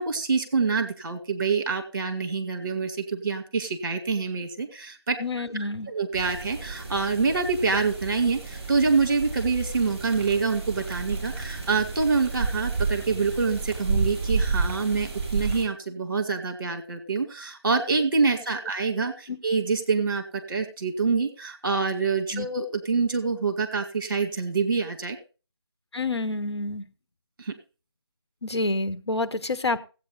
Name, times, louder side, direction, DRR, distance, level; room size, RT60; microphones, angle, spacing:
voice 1, 0.0-5.2 5.5-25.2 27.4-27.5, right 4 dB, 45° right, 7 dB, 2.1 m, -26 dB
voice 2, 5.2-5.9 19.3-19.4 22.3-22.5 25.9-26.8 28.4-29.8, left 2 dB, 70° left, 9 dB, 1.2 m, -28 dB
sound 1, 6.1-15.6, right 4 dB, 25° right, 6.3 m, -31 dB
15.5 x 8.6 x 3.9 m, 0.34 s
figure-of-eight pair, 160°, 15 cm